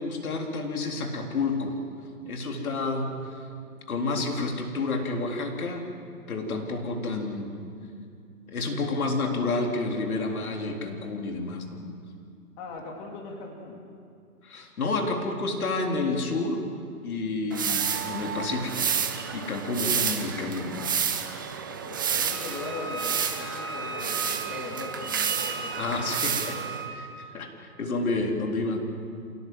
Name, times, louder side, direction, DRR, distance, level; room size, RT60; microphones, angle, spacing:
voice 1, 0.0-1.8 2.3-3.5 3.9-5.9 6.3-7.5 8.5-11.8 14.4-16.7 17.0-18.9 19.3-20.9 25.8-26.6 26.9-28.8, left 3 dB, 65° left, 2 dB, 4.1 m, -30 dB
voice 2, 12.6-13.8 21.7-25.9 26.2-27.2, left 3 dB, 30° left, 0 dB, 3.0 m, -40 dB
sound 1, 17.5-26.9, right 7 dB, 15° right, 0.5 m, -30 dB
Wind instrument woodwind instrument, 22.3-27.0, right 3 dB, 30° right, 3.9 m, -38 dB
27.5 x 18.0 x 7.8 m, 2.4 s
hypercardioid pair, 150°, 45 cm